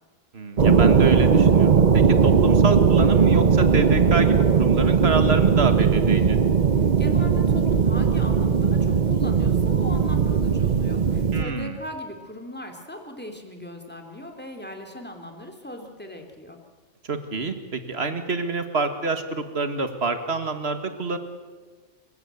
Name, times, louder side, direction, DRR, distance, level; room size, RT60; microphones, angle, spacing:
voice 1, 0.3-6.4 11.3-11.8 17.1-21.2, right 3 dB, 60° right, 8 dB, 2.0 m, -27 dB
sound 1, 0.6-11.4, right 6 dB, 40° right, 0.9 m, -18 dB
voice 2, 6.8-16.6, left 1 dB, 10° left, 3 dB, 2.9 m, -38 dB
28.0 x 16.5 x 8.2 m, 1.4 s
omnidirectional pair, 1.2 m